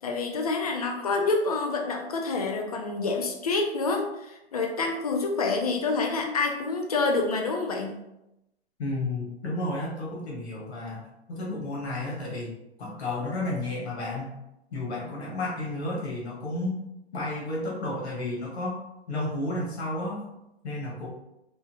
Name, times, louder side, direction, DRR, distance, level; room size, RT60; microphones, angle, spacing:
voice 1, 0.0-8.0, left 3 dB, 35° left, 3 dB, 0.4 m, -27 dB
voice 2, 8.8-12.5 12.8-14.4 14.7-16.8 17.1-18.8 19.1-20.3 20.6-21.1, left 2 dB, 70° left, -4 dB, 1.3 m, -32 dB
3.6 x 2.0 x 2.9 m, 0.88 s
hypercardioid pair, 165°, 33 cm